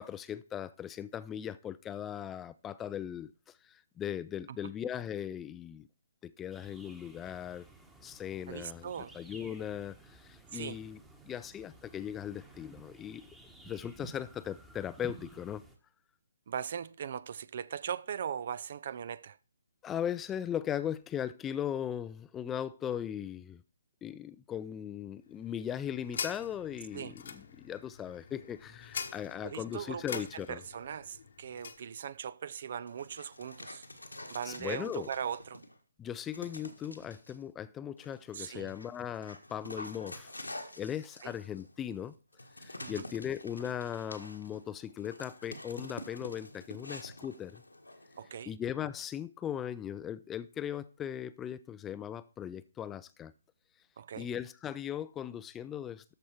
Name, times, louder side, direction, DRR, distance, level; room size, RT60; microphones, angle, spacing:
voice 1, 0.0-3.3 3.6-5.9 6.2-7.6 8.0-11.0 11.2-13.2 13.6-15.6 19.8-23.6 24.0-30.6 34.4-35.1 36.0-40.3 40.8-42.1 42.6-47.6 48.5-53.3 54.2-56.1, left 9 dB, 15° left, 0.4 m, -38 dB
sound 1, 6.5-15.8, right 3 dB, 5° right, 1.2 m, -54 dB
voice 2, 8.5-9.1 10.5-10.8 16.5-19.4 26.9-27.1 29.4-30.2 30.5-33.8 34.3-35.6 38.3-38.7 41.2-41.3 42.8-43.1 48.2-48.5 54.0-54.3, right 8 dB, 45° right, 0.5 m, -39 dB
sound 2, 25.3-31.9, left 6 dB, 55° left, 1.1 m, -44 dB
Dog, 32.9-35.8 36.3-37.4 38.0-48.3, left 1 dB, 85° left, 1.6 m, -48 dB
13.5 x 5.3 x 4.5 m
figure-of-eight pair, 135°, 0 cm